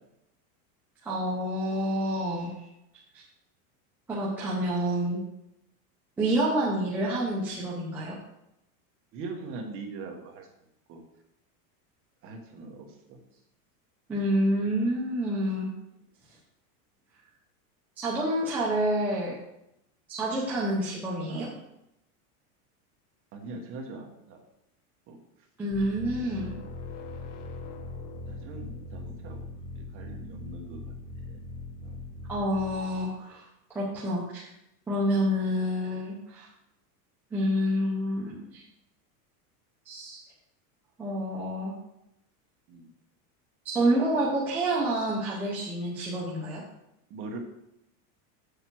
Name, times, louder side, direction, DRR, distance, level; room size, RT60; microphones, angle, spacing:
voice 1, 1.0-2.5 4.1-5.2 6.2-8.2 14.1-15.7 18.0-19.3 20.1-21.5 25.6-26.5 32.3-33.4 33.7-34.5 34.9-36.5 37.3-38.6 39.9-40.2 41.0-41.7 43.6-46.6, right 1 dB, 5° right, -7 dB, 0.4 m, -28 dB
voice 2, 9.1-10.5 10.9-11.0 12.2-13.2 21.1-21.5 23.3-24.4 25.1-25.2 26.4-26.5 28.3-29.4 29.8-30.8 31.3-31.4 31.8-32.0 42.7-42.9 47.1-47.4, right 3 dB, 30° right, 1 dB, 1.2 m, -41 dB
sound 1, 25.7-33.1, left 2 dB, 80° left, 1.4 m, -41 dB
7.5 x 6.7 x 4.5 m, 0.84 s
supercardioid pair, 175°, 45 cm